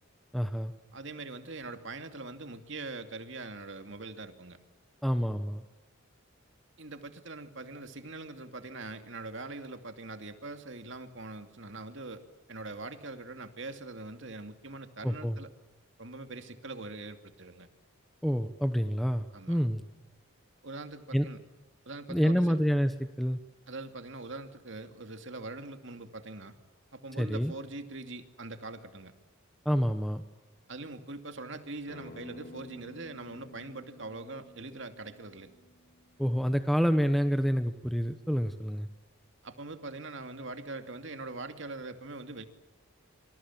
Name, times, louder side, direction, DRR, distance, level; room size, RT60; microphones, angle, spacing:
voice 1, 0.3-0.7 5.0-5.6 15.0-15.4 18.2-19.8 21.1-21.3 22.1-23.4 27.2-27.5 29.6-30.2 36.2-38.9, equal, ahead, 8 dB, 1.1 m, -28 dB
voice 2, 0.9-4.6 6.8-12.2 12.5-15.5 16.0-17.7 19.3-19.7 20.6-21.4 21.9-22.6 23.7-26.6 26.9-29.1 30.7-35.5 39.4-42.4, right 2 dB, 60° right, 7 dB, 2.6 m, -42 dB
Acoustic guitar, 31.9-37.1, left 1 dB, 50° left, 3.3 m, -53 dB
27.5 x 26.0 x 7.6 m, 1.1 s
head